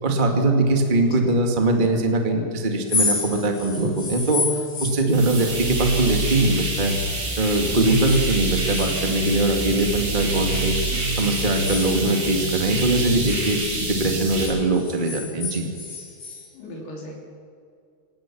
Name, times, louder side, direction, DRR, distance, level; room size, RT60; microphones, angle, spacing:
voice 1, 0.0-6.9 7.4-10.7 11.1-15.6, right 2 dB, 25° right, 3 dB, 1.1 m, -21 dB
sound 1, 2.7-7.0 7.3-9.8 10.3-12.6 12.9-16.4, left 3 dB, 55° left, 7.5 m, -32 dB
sound 2, 5.1-14.5, right 1 dB, 90° right, 7.7 m, -26 dB
voice 2, 16.5-17.2, left 2 dB, 75° left, -2 dB, 5.3 m, -38 dB
25.0 x 18.5 x 6.1 m, 2.3 s
omnidirectional pair, 4.6 m